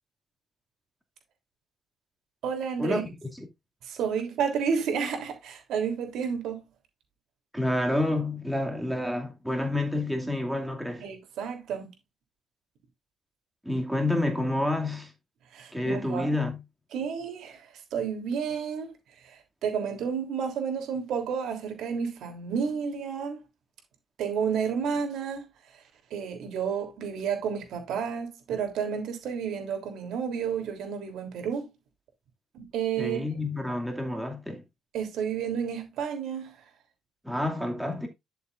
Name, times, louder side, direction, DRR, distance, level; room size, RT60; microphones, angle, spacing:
voice 1, 2.4-3.0 3.8-6.7 11.0-11.9 15.5-16.3 16.9-18.9 19.2-23.4 24.2-25.4 25.7-25.8 26.1-31.7 32.5-33.2 34.9-36.6, right 7 dB, 80° right, 3.2 m, -31 dB
voice 2, 7.5-11.0 13.6-15.1 15.7-16.6 33.0-34.6 37.2-38.1, left 1 dB, 5° right, 2.4 m, -28 dB
11.0 x 6.7 x 2.5 m
cardioid pair, 90°, 0 cm